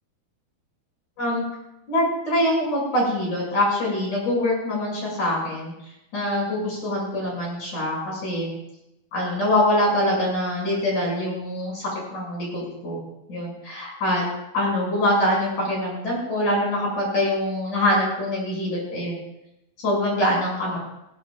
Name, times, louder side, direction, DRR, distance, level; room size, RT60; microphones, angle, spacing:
voice 1, 1.9-5.7 6.1-8.5 9.1-13.0 13.3-14.2 14.5-19.2 19.8-20.8, left 1 dB, 50° left, -3 dB, 7.5 m, -24 dB
21.0 x 17.0 x 2.4 m, 0.85 s
omnidirectional pair, 4.4 m